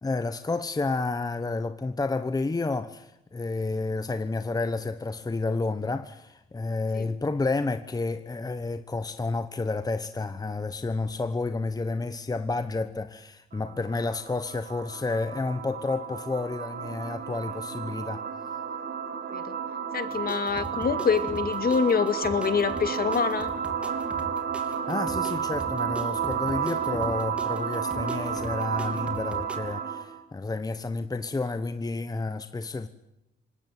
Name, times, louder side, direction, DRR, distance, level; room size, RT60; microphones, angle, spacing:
voice 1, 0.0-18.2 24.6-32.9, left 3 dB, 20° left, 1.1 m, -30 dB
sound 1, 13.5-30.2, right 7 dB, 50° right, 2.8 m, -32 dB
voice 2, 19.9-23.5, left 6 dB, 50° left, 2.4 m, -26 dB
sound 2, 20.1-29.6, right 1 dB, 5° right, 3.5 m, -42 dB
25.5 x 20.0 x 9.3 m
cardioid pair, 90°, 20 cm